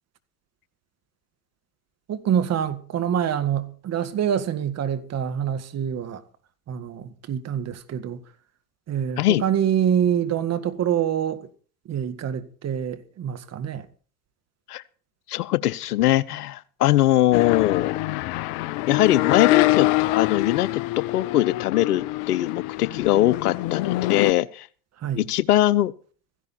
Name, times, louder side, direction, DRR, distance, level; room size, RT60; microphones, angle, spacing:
voice 1, 2.1-6.2 6.7-8.2 8.9-11.5 11.9-13.9 25.0-25.3, right 9 dB, 30° right, 1.9 m, -26 dB
voice 2, 15.3-17.9 18.9-24.7 25.2-25.9, left 14 dB, 70° left, 0.9 m, -21 dB
sound 1, 17.3-24.3, left 19 dB, 45° left, 0.7 m, -25 dB
16.5 x 15.5 x 4.4 m
figure-of-eight pair, 80°, 47 cm